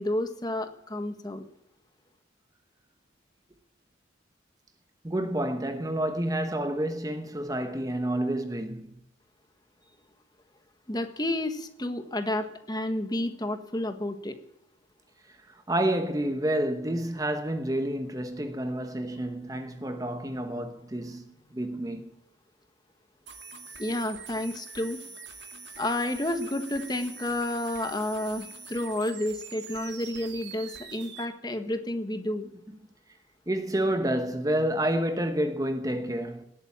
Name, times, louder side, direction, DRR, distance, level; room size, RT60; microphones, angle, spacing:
voice 1, 0.0-1.5 10.9-14.4 23.8-25.0 25.8-32.5, left 1 dB, 20° left, 1.4 m, -30 dB
voice 2, 5.0-8.9 15.3-22.1 33.5-36.4, right 1 dB, 20° right, 1.0 m, -29 dB
sound 1, 23.3-31.3, right 5 dB, 60° right, 2.1 m, -44 dB
18.5 x 8.8 x 8.6 m
head